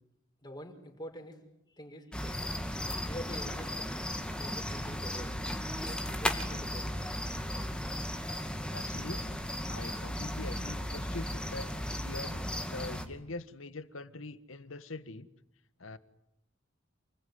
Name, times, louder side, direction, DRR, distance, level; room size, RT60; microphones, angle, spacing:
voice 1, 0.4-1.4 1.8-2.5 3.0-3.9 4.4-5.4 5.8-7.0, equal, 20° left, 5.4 m, -46 dB
sound 1, 2.1-13.0, left 1 dB, 5° left, 2.4 m, -36 dB
voice 2, 8.7-11.7 12.0-15.3 15.8-16.0, left 2 dB, 75° left, 1.6 m, -44 dB
29.5 x 21.0 x 9.7 m
head